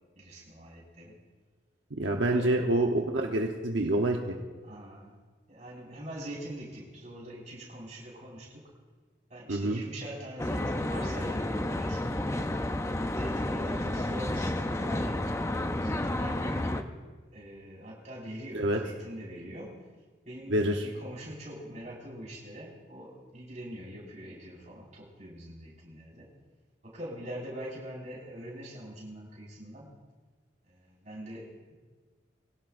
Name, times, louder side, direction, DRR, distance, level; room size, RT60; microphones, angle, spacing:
voice 1, 0.1-1.2 2.2-2.5 4.6-5.1 5.5-8.7 9.3-12.6 13.2-16.9 17.3-19.8 20.3-26.3 26.8-29.9 30.6-31.7, right 1 dB, 40° right, -4 dB, 5.3 m, -43 dB
voice 2, 2.0-4.4 9.5-9.8 18.5-18.8 20.5-20.9, right 1 dB, 85° right, 1 dB, 1.0 m, -27 dB
Traffic noise roadway noise, 10.4-16.8, left 1 dB, 15° left, 0.5 m, -31 dB
23.0 x 17.0 x 2.6 m, 1.4 s
head